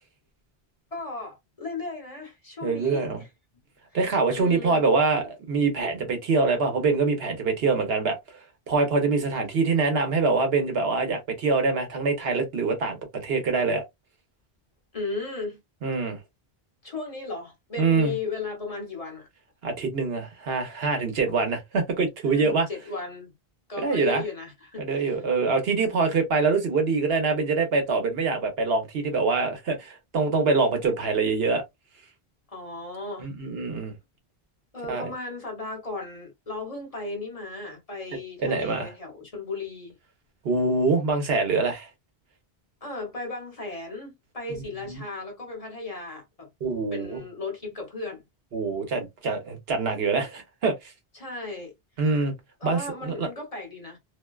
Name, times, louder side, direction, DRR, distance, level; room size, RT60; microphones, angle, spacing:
voice 1, 0.9-3.3 4.3-4.9 14.9-15.6 16.8-19.3 21.2-21.5 22.3-23.3 23.7-25.2 32.5-33.3 34.7-40.0 42.8-46.5 46.9-48.2 51.1-51.7 52.6-54.0, left 3 dB, 40° left, 0.9 m, -36 dB
voice 2, 2.6-3.2 3.9-8.2 8.7-13.8 15.8-16.2 17.8-18.1 19.6-22.7 23.8-24.2 24.8-31.6 33.2-33.9 34.9-35.1 38.4-38.9 40.4-41.9 44.9-45.0 46.6-47.2 48.5-50.7 52.0-52.3 52.6-53.3, right 4 dB, 75° right, 1.0 m, -24 dB
2.5 x 2.2 x 2.2 m
omnidirectional pair, 1.0 m